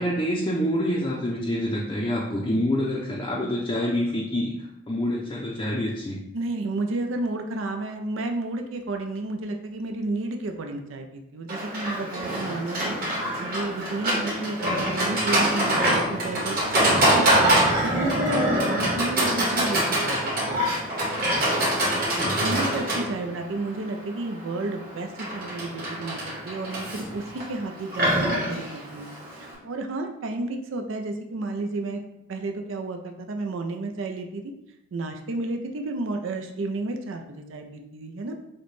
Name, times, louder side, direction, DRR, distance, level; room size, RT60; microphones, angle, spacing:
voice 1, 0.0-4.5 4.9-6.2 22.0-22.7, equal, 25° left, -4 dB, 0.4 m, -27 dB
voice 2, 6.3-16.6 16.9-17.3 17.8-20.6 22.3-29.1 29.4-32.0 32.3-34.5 34.9-38.3, right 2 dB, 85° right, 4 dB, 0.4 m, -32 dB
Livestock farm animals working animals, 11.5-29.5, right 1 dB, 50° right, 1.5 m, -25 dB
6.4 x 2.2 x 3.1 m, 0.86 s
head